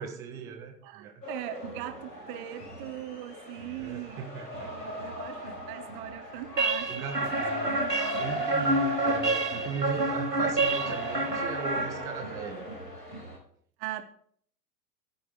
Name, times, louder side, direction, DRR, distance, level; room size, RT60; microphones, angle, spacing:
voice 1, 0.0-1.2 3.8-5.0 6.9-12.7, right 6 dB, 10° right, 3 dB, 0.4 m, -39 dB
voice 2, 0.8-8.5 9.4-9.5 13.8-14.0, right 14 dB, 30° right, 8 dB, 0.9 m, -41 dB
sound 1, 1.2-13.4, equal, 85° left, 5.2 m, -38 dB
sound 2, 6.6-12.4, right 2 dB, 90° right, 1.6 m, -29 dB
14.0 x 5.5 x 4.6 m, 0.62 s
figure-of-eight pair, 100°, 48 cm